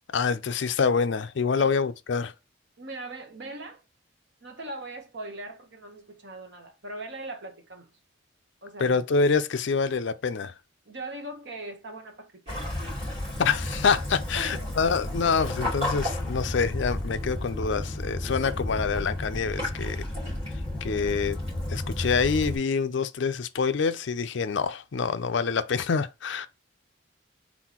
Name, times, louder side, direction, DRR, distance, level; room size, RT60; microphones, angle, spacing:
voice 1, 0.1-2.3 8.8-10.5 13.4-20.0 20.8-21.4 21.7-26.5, left 5 dB, 60° left, 0.4 m, -26 dB
voice 2, 2.8-3.8 4.4-7.9 8.6-9.0 10.9-12.7 14.3-14.7, right 2 dB, 55° right, 1.0 m, -40 dB
Waves surf / Splash splatter / Trickle dribble, 12.5-22.6, left 1 dB, 30° right, 2.9 m, -32 dB
4.2 x 3.8 x 2.9 m
head